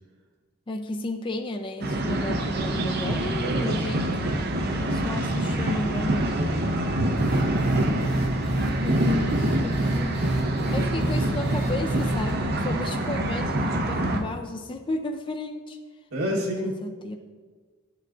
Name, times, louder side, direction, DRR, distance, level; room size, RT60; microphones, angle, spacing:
voice 1, 0.7-4.0 4.6-6.4 8.5-10.2 10.7-15.8 16.6-17.2, left 2 dB, 25° left, 4 dB, 0.3 m, -33 dB
sound 1, 1.8-14.2, right 1 dB, 45° right, 0.6 m, -26 dB
voice 2, 6.3-6.9 10.4-11.1 16.1-16.8, equal, 85° right, -3 dB, 1.3 m, -31 dB
sound 2, 7.2-12.3, right 2 dB, 50° left, 1.5 m, -29 dB
11.0 x 6.7 x 2.4 m, 1.5 s
head